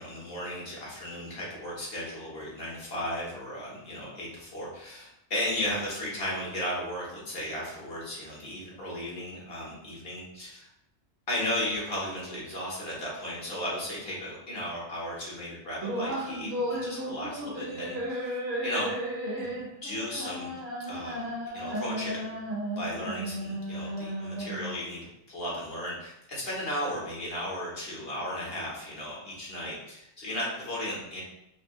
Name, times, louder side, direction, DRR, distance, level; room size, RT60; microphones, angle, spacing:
voice 1, 0.0-10.7 11.3-18.4 18.6-18.9 19.4-20.5 20.9-21.2 21.5-22.4 22.8-31.2, left 1 dB, 50° left, -5 dB, 1.4 m, -35 dB
sound 1, 15.8-24.8, equal, 55° right, 1.4 m, -34 dB
5.4 x 2.5 x 2.3 m, 0.81 s
omnidirectional pair, 1.3 m